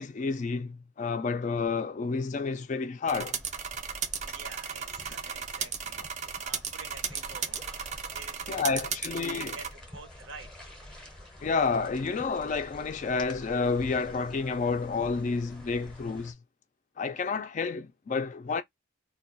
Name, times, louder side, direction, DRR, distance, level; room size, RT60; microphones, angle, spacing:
voice 1, 0.0-3.4 8.5-9.6 11.4-16.4 17.0-18.6, left 4 dB, 35° left, 0.3 m, -30 dB
sound 1, 3.0-16.3, left 1 dB, 5° left, 0.6 m, -48 dB
sound 2, 3.1-9.7, right 7 dB, 35° right, 0.4 m, -35 dB
voice 2, 4.2-9.0 9.3-10.5, right 4 dB, 65° right, 0.7 m, -49 dB
2.2 x 2.2 x 3.8 m
head